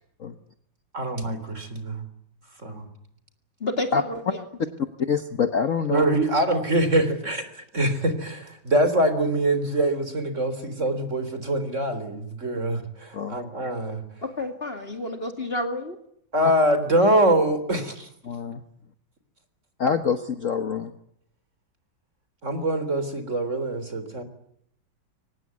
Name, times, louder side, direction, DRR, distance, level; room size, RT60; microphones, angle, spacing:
voice 1, 0.9-2.0 2.6-2.9 5.9-14.0 16.3-18.1 22.4-24.2, right 1 dB, 35° right, 10 dB, 4.0 m, -24 dB
voice 2, 3.6-4.4 14.2-16.0, left 2 dB, 30° left, 5 dB, 2.6 m, -30 dB
voice 3, 5.0-6.2 13.1-13.4 18.2-18.6 19.8-20.9, left 6 dB, 45° left, 8 dB, 1.4 m, -25 dB
24.0 x 20.0 x 9.4 m, 0.73 s
omnidirectional pair, 2.1 m